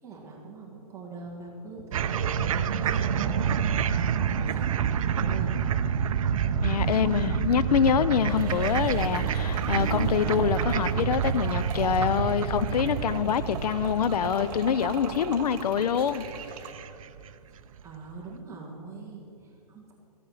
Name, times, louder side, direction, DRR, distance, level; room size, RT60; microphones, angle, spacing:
voice 1, 0.0-3.3 3.6-3.7 3.9-5.5 6.6-7.0 17.8-19.9, right 4 dB, 15° right, 1.6 m, -42 dB
sound 1, 1.9-17.3, right 7 dB, 60° right, 0.7 m, -28 dB
voice 2, 6.6-16.2, left 8 dB, 75° left, 0.6 m, -25 dB
sound 2, 8.3-16.7, right 5 dB, 35° right, 1.4 m, -40 dB
14.0 x 8.7 x 6.5 m
hypercardioid pair, 155°, 20 cm